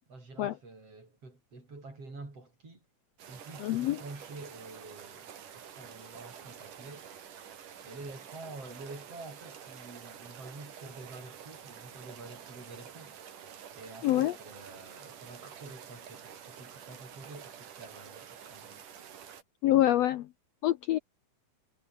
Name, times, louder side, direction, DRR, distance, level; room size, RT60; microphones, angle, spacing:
voice 1, 0.1-2.8 3.3-5.3 5.5-7.1 7.8-13.1 13.7-18.8, right 3 dB, 40° right, 8.2 m, -48 dB
sound 1, 3.2-19.4, right 8 dB, 65° right, 4.0 m, -49 dB
voice 2, 3.6-4.0 14.0-14.3 19.6-20.3 20.6-21.0, left 14 dB, 85° left, 1.4 m, -25 dB
omnidirectional pair, 4.0 m